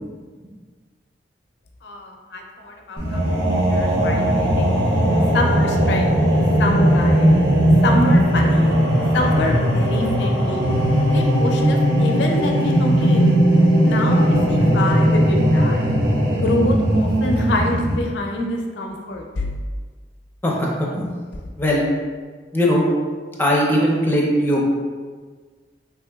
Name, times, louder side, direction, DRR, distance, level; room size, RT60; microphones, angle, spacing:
voice 1, 1.8-4.8 5.3-6.1 6.6-7.4 7.8-8.8 9.1-10.6 11.1-13.3 13.8-15.8 16.4-19.6, left 2 dB, 75° left, 2 dB, 0.4 m, -26 dB
sound 1, 3.0-18.0, equal, 75° right, 0.6 m, -18 dB
voice 2, 20.4-21.1 21.6-21.8 22.5-22.8 23.4-24.7, equal, 10° left, -3 dB, 0.5 m, -19 dB
3.4 x 2.8 x 2.2 m, 1.5 s
head